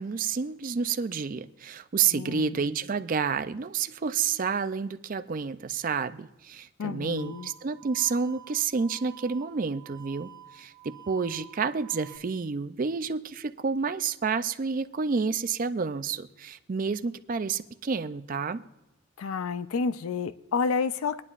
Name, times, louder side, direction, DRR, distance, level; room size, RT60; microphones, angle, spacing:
voice 1, 0.0-18.6, right 5 dB, 40° right, 0.4 m, -29 dB
voice 2, 2.1-2.6 6.8-7.5 19.2-21.2, left 5 dB, 85° left, 0.4 m, -30 dB
sound 1, 7.2-12.2, right 11 dB, 25° right, 1.6 m, -50 dB
24.5 x 9.6 x 2.5 m
head